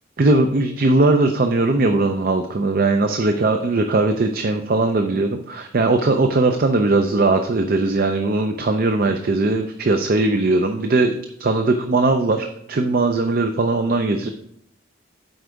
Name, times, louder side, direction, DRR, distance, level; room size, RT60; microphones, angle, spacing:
voice 1, 0.2-14.3, right 2 dB, 45° right, 6 dB, 0.5 m, -19 dB
7.9 x 4.7 x 5.1 m, 0.71 s
head